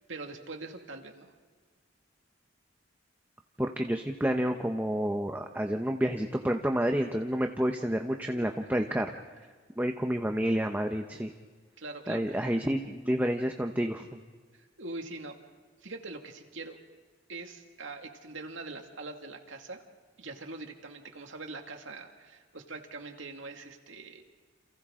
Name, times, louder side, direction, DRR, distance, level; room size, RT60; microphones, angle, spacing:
voice 1, 0.1-1.3 8.3-8.7 11.8-12.4 14.5-15.4 15.8-16.8 17.3-19.8 20.2-24.2, right 3 dB, 90° right, 3 dB, 2.2 m, -43 dB
voice 2, 3.6-9.1 9.8-11.3 12.1-14.1, equal, 10° right, 4 dB, 0.9 m, -29 dB
29.0 x 28.5 x 3.8 m, 1.5 s
head